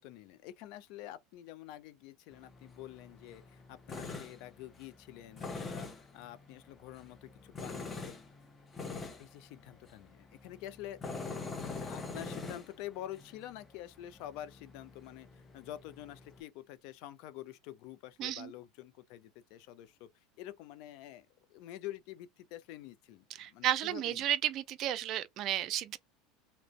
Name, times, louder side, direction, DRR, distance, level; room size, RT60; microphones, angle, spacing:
voice 1, 0.0-5.9 6.1-8.1 8.8-11.0 11.3-20.1 20.4-24.2, left 13 dB, 60° left, 0.4 m, -47 dB
Tools, 2.3-16.4, left 4 dB, 25° left, 0.7 m, -45 dB
voice 2, 18.2-18.5 23.4-26.0, right 12 dB, 50° right, 0.3 m, -33 dB
2.4 x 2.1 x 3.0 m
hypercardioid pair, 75°, 0 cm